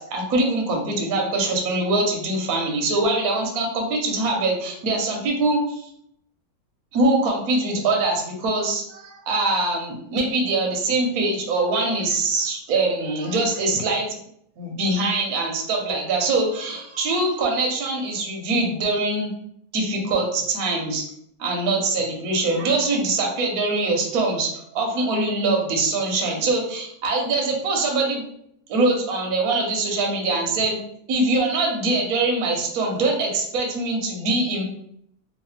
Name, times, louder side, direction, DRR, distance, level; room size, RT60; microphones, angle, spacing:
voice 1, 0.0-5.9 6.9-14.1 14.6-19.3 19.7-21.0 21.4-28.2 28.7-30.8 31.1-34.6, right 2 dB, 60° right, 0 dB, 1.0 m, -23 dB
3.1 x 2.6 x 3.1 m, 0.69 s
omnidirectional pair, 2.1 m